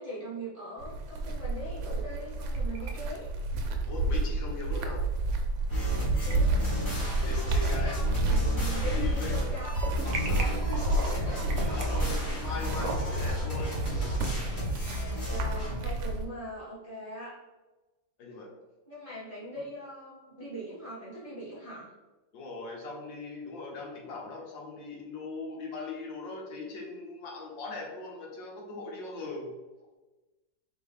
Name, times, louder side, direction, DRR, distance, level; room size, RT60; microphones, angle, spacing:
voice 1, 0.0-3.3 6.2-6.7 7.6-9.8 10.8-11.5 12.6-12.8 14.9-17.4 18.9-21.9, right 1 dB, 25° right, -11 dB, 1.0 m, -41 dB
sound 1, 0.8-16.2, right 2 dB, 85° right, 1.4 m, -30 dB
sound 2, 2.3-2.9 3.2-3.3 4.8-4.9 6.0-6.4 6.9-7.4 7.7-9.0 9.3-13.3, right 2 dB, 70° right, 1.1 m, -39 dB
voice 2, 3.9-5.0 7.2-7.9 8.3-8.4 8.7-9.3 10.2-11.2 11.5-13.7 18.2-18.5 22.3-29.5, left 3 dB, 75° left, -1 dB, 1.5 m, -40 dB
sound 3, 5.7-15.8, left 1 dB, 25° left, 1.7 m, -33 dB
4.2 x 3.1 x 3.3 m, 1.2 s
omnidirectional pair, 2.1 m